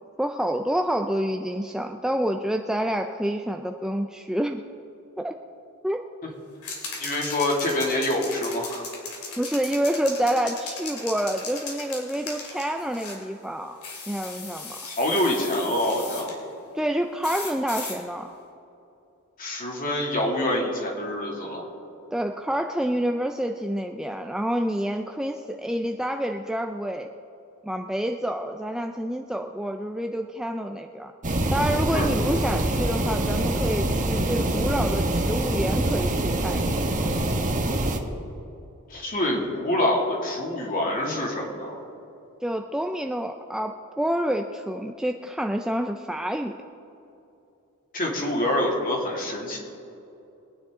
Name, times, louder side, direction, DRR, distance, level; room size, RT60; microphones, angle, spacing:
voice 1, 0.2-4.6 5.2-5.4 5.8-6.0 9.4-13.8 14.1-14.8 16.7-18.3 22.1-27.1 27.6-31.1 31.5-36.8 42.4-46.6, equal, 5° right, 4 dB, 0.4 m, -28 dB
sound 1, 6.6-13.2 13.8-16.3 17.2-18.0, left 4 dB, 80° left, 2.7 m, -37 dB
voice 2, 7.0-8.9 14.9-16.3 19.4-21.6 31.9-32.2 38.9-41.8 47.9-49.6, left 1 dB, 40° left, -1 dB, 2.5 m, -26 dB
sound 2, 31.2-38.0, right 1 dB, 35° right, 1.1 m, -25 dB
22.5 x 9.6 x 3.7 m, 2.8 s
head